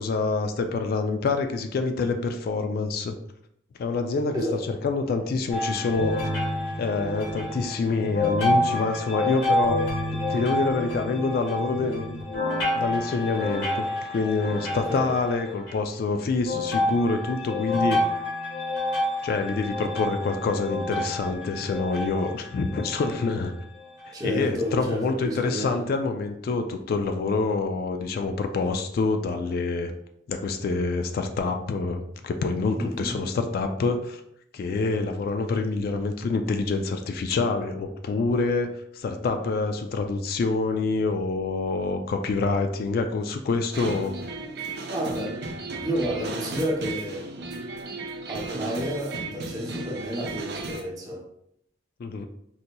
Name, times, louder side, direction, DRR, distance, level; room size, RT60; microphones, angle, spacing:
voice 1, 0.0-3.1 3.8-6.2 6.8-9.8 10.1-12.5 12.7-18.0 19.2-23.5 24.1-29.9 30.3-34.2 34.5-44.1 52.0-52.3, left 3 dB, 55° left, 6 dB, 0.3 m, -26 dB
sound 1, 5.5-15.7 16.4-23.4 24.0-24.1 24.8-24.9, left 1 dB, 80° left, 1.3 m, -28 dB
voice 2, 14.7-15.2 24.1-25.8 32.8-33.1 44.9-47.3 48.3-51.2, equal, 20° right, -2 dB, 0.7 m, -31 dB
sound 2, 43.7-50.8, right 3 dB, 60° right, 0.5 m, -35 dB
4.1 x 2.7 x 2.2 m, 0.73 s
head